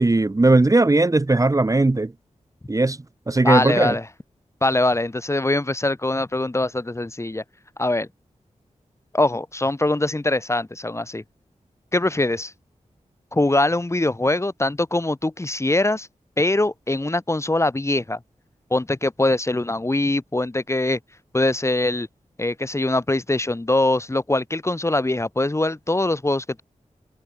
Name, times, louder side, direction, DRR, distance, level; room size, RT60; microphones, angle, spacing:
voice 1, 0.0-2.1 2.7-3.0 3.3-4.0, right 2 dB, 25° right, 1.2 m, -18 dB
voice 2, 3.4-4.0 4.6-7.4 7.8-8.1 9.1-11.2 11.9-12.5 13.3-16.1 16.4-18.2 18.7-21.0 21.3-22.1 22.4-26.4, left 2 dB, 20° left, 1.7 m, -22 dB
wide cardioid pair, 105°, 13 cm